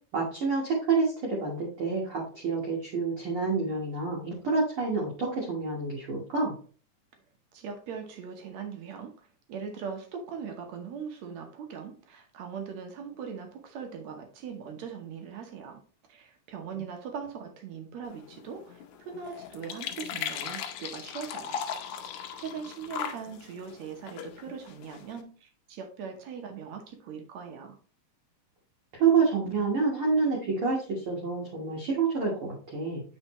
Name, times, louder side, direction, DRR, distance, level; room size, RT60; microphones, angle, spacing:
voice 1, 0.1-6.6 28.9-33.0, right 4 dB, 55° right, -3 dB, 1.8 m, -28 dB
voice 2, 7.5-9.1 9.5-15.8 16.1-21.6 22.1-27.8, right 6 dB, 70° right, 4 dB, 1.9 m, -40 dB
sound 1, 18.0-25.2, left 8 dB, 75° left, 2.0 m, -39 dB
7.7 x 4.5 x 2.9 m, 0.41 s
omnidirectional pair, 3.7 m